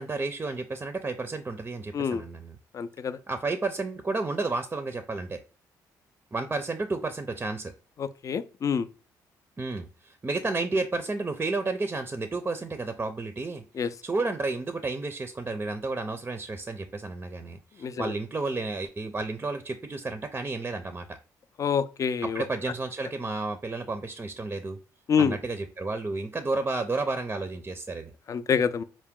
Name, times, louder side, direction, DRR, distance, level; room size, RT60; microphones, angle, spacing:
voice 1, 0.0-2.6 3.3-5.4 6.3-7.7 9.6-21.2 22.2-24.8 25.2-28.1, right 3 dB, 25° right, 0.5 m, -31 dB
voice 2, 2.7-3.2 8.0-8.9 13.8-13.9 17.8-18.1 21.6-22.4 25.1-25.3 28.3-28.8, left 6 dB, 45° left, 0.4 m, -26 dB
4.6 x 2.1 x 3.6 m
cardioid pair, 75°, 8 cm